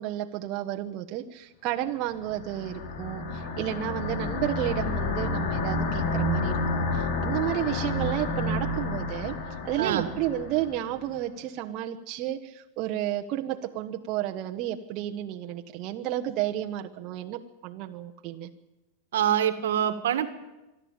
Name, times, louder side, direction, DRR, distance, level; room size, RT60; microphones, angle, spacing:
voice 1, 0.0-9.4 9.6-18.5, right 13 dB, 45° right, 4 dB, 1.3 m, -32 dB
sound 1, 2.2-10.8, left 2 dB, 60° left, 3.7 m, -30 dB
voice 2, 9.8-10.1 19.1-20.3, right 10 dB, 80° right, 10 dB, 1.7 m, -25 dB
25.0 x 12.0 x 9.0 m, 1.0 s
hypercardioid pair, 120°, 0 cm